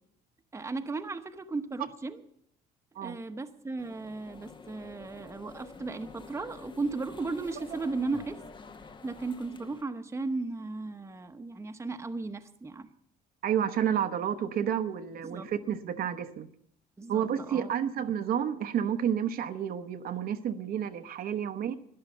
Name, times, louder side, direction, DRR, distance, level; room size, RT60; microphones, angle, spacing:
voice 1, 0.5-2.2 3.0-8.4 9.0-12.9 15.2-15.5 17.0-17.8, right 3 dB, 15° right, 7 dB, 1.0 m, -36 dB
sound 1, 3.8-9.8, left 4 dB, 30° left, 0.9 m, -49 dB
voice 2, 13.4-16.5 17.1-21.7, right 9 dB, 60° right, 8 dB, 0.9 m, -30 dB
12.5 x 10.5 x 8.9 m, 0.72 s
cardioid pair, 110°, 17 cm